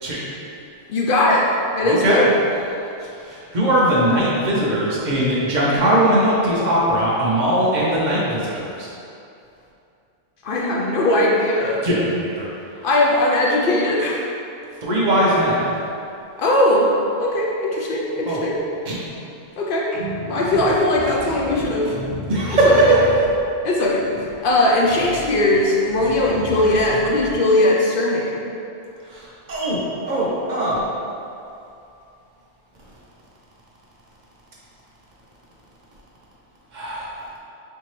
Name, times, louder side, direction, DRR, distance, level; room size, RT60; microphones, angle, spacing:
voice 1, 0.9-1.5 1.8-2.3 10.4-11.8 12.8-14.3 16.4-16.9 17.2-18.6 19.6-19.9 20.3-22.0 22.7-22.8 23.6-24.1 24.4-28.4, left 1 dB, 60° left, -3 dB, 0.6 m, -19 dB
voice 2, 1.8-2.3 3.0-8.9 11.8-12.5 14.8-15.7 18.3-18.4 18.9-19.0 22.3-23.0 29.1-30.8 36.7-37.2, right 1 dB, 45° right, -6 dB, 0.7 m, -20 dB
sound 1, 19.9-27.4, equal, 80° left, 1.3 m, -34 dB
4.3 x 2.7 x 3.1 m, 2.6 s
omnidirectional pair, 1.2 m